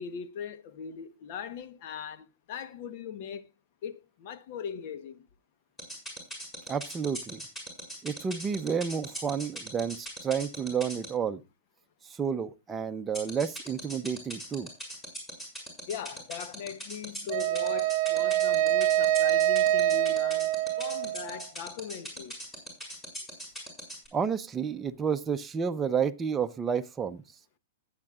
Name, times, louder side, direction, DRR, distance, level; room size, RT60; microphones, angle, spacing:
voice 1, 0.0-3.4 3.8-5.3 15.9-20.5 20.8-22.4, left 7 dB, 55° left, 1.1 m, -40 dB
sound 1, 5.8-11.1 13.1-24.1, right 1 dB, 15° left, 6.3 m, -39 dB
voice 2, 6.7-7.4 8.0-11.4 12.1-14.7 24.1-27.2, right 7 dB, 15° right, 0.7 m, -30 dB
Wind instrument woodwind instrument, 17.3-21.4, right 13 dB, 50° right, 0.9 m, -25 dB
20.0 x 8.9 x 2.5 m
hypercardioid pair, 125°, 0 cm